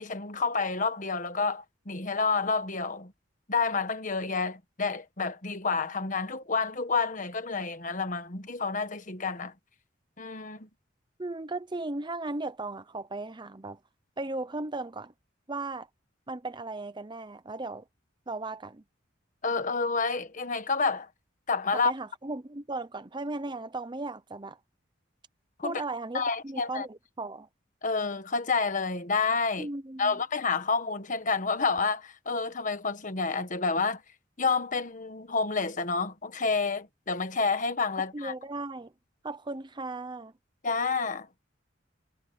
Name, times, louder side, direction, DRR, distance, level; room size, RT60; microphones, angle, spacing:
voice 1, 0.0-3.1 3.5-9.5 10.2-10.7 19.4-21.1 21.5-21.9 25.6-25.8 26.1-26.8 27.8-29.7 30.0-34.0 34.4-38.3 40.6-41.3, left 4 dB, 40° left, 1.5 m, -29 dB
voice 2, 11.2-13.8 14.2-15.1 15.5-15.9 16.3-17.8 18.3-18.8 21.8-24.6 25.6-27.5 29.6-30.2 38.1-38.9 39.2-40.3, right 2 dB, 25° right, 0.7 m, -36 dB
head